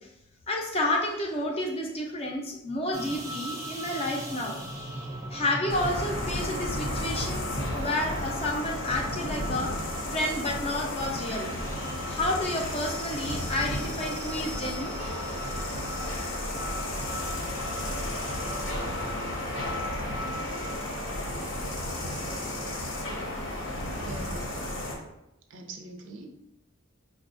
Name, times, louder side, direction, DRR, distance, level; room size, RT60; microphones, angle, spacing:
voice 1, 0.5-4.6 5.3-9.7 10.1-11.5 12.1-15.0, left 1 dB, 30° left, 0 dB, 0.5 m, -30 dB
sound 1, 2.9-20.7, equal, 15° right, 0.5 m, -40 dB
sound 2, 5.7-25.0, left 1 dB, 75° left, 0.8 m, -33 dB
voice 2, 23.6-24.4 25.5-26.4, right 2 dB, 70° right, 3 dB, 0.5 m, -43 dB
5.4 x 2.3 x 2.5 m, 0.87 s
head